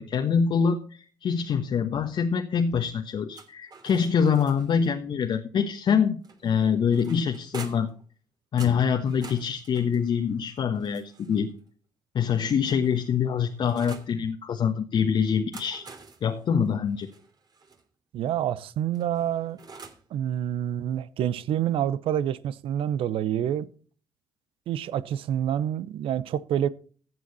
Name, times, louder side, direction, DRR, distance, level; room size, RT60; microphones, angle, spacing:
voice 1, 0.0-7.9 8.5-11.5 12.1-15.8 16.2-17.1, left 7 dB, 55° left, 1.3 m, -25 dB
sound 1, 3.3-4.9 6.2-8.0 8.6-11.5 12.3-14.1 15.3-17.8 18.9-20.1, right 4 dB, 45° right, 3.2 m, -47 dB
voice 2, 18.1-19.6 20.1-23.7 24.7-26.7, right 10 dB, 65° right, 0.9 m, -27 dB
15.0 x 7.8 x 4.2 m
hypercardioid pair, 55°, 10 cm